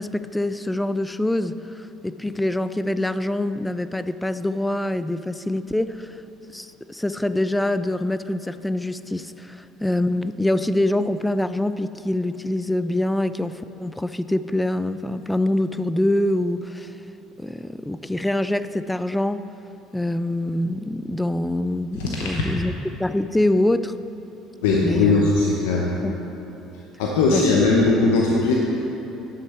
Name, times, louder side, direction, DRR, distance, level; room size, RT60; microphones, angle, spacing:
voice 1, 0.0-6.2 6.5-16.9 17.4-19.5 19.9-22.7 23.0-23.9 24.7-25.3 26.0-26.1 27.3-27.4, left 1 dB, 10° left, 13 dB, 0.4 m, -25 dB
voice 2, 22.0-22.4 24.6-25.9 27.0-28.5, left 3 dB, 85° left, -2 dB, 0.9 m, -19 dB
11.5 x 6.6 x 4.5 m, 3.0 s
supercardioid pair, 75°, 0 cm